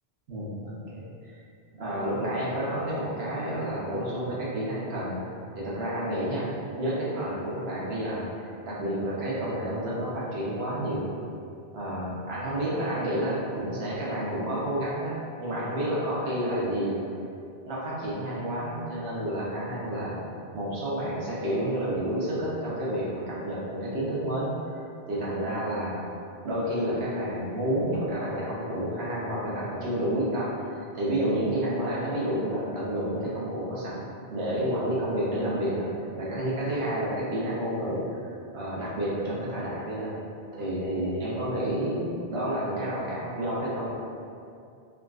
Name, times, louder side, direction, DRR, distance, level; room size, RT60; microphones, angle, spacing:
voice 1, 0.3-1.1 1.8-6.5 6.8-11.1 11.7-17.0 17.6-20.2 20.5-24.8 25.1-26.0 26.4-35.9 36.2-40.2 40.5-43.9, right 1 dB, 90° right, -7 dB, 1.0 m, -30 dB
3.6 x 2.3 x 2.3 m, 2.5 s
omnidirectional pair, 1.0 m